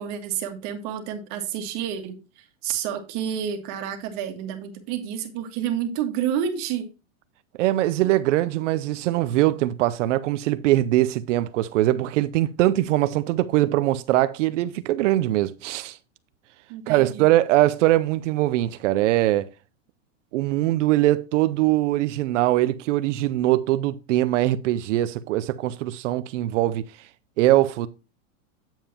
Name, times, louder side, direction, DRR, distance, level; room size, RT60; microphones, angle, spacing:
voice 1, 0.0-6.9 16.7-17.3, right 9 dB, 45° right, 1.8 m, -29 dB
voice 2, 7.6-16.0 16.9-19.5 20.3-26.9 27.4-27.9, right 15 dB, 65° right, 0.6 m, -22 dB
8.9 x 7.4 x 2.9 m
supercardioid pair, 135°, 39 cm